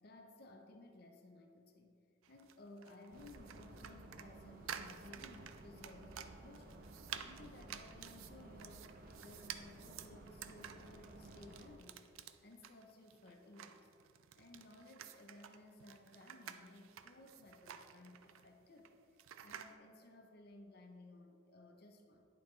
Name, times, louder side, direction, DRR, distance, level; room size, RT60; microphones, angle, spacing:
voice 1, 0.0-2.0 2.3-6.8 7.2-13.9 14.4-18.9 19.4-22.3, left 2 dB, 50° left, 3 dB, 0.6 m, -58 dB
sound 1, 2.2-19.7, right 9 dB, 90° right, 0.4 m, -52 dB
sound 2, 3.1-11.8, right 1 dB, 45° right, 0.6 m, -55 dB
10.5 x 4.2 x 3.1 m, 2.5 s
head